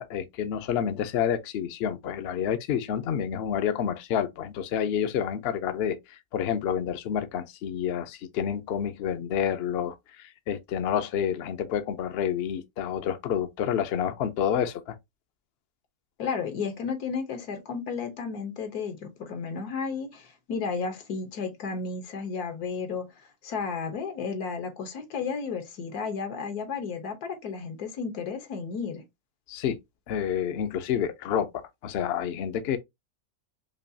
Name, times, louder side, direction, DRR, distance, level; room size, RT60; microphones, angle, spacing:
voice 1, 0.0-14.9 29.5-29.8 30.1-31.5 31.8-32.8, left 8 dB, 60° left, 0.7 m, -29 dB
voice 2, 16.2-29.0, left 5 dB, 80° left, 1.5 m, -33 dB
5.2 x 2.3 x 2.7 m
omnidirectional pair, 1.6 m